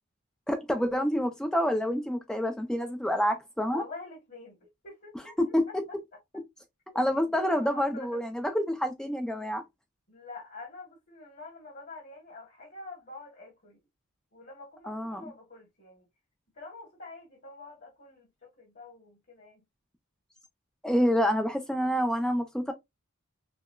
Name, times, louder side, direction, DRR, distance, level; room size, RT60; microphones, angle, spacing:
voice 1, 0.5-3.8 5.4-5.7 6.9-9.6 14.9-15.2 20.8-22.7, equal, 5° left, 0.4 m, -27 dB
voice 2, 3.7-4.6 4.8-6.0 7.1-8.2 10.1-13.8 14.3-16.0 16.6-19.6, left 3 dB, 50° left, 1.4 m, -46 dB
5.7 x 2.1 x 2.2 m
head